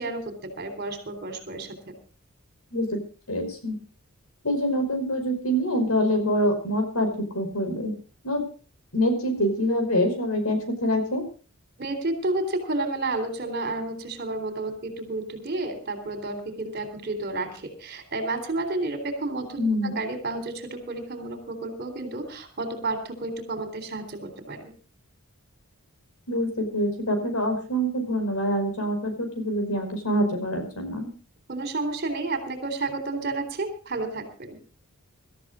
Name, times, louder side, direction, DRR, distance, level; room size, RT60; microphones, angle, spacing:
voice 1, 0.0-1.7 11.8-24.7 31.5-34.6, right 2 dB, 45° right, 8 dB, 3.7 m, -31 dB
voice 2, 3.3-3.8 4.4-7.1 7.3-7.9 8.2-8.4 8.9-11.2 19.6-20.0 26.3-31.1, equal, 80° left, 7 dB, 5.4 m, -25 dB
25.5 x 13.5 x 2.5 m, 0.38 s
head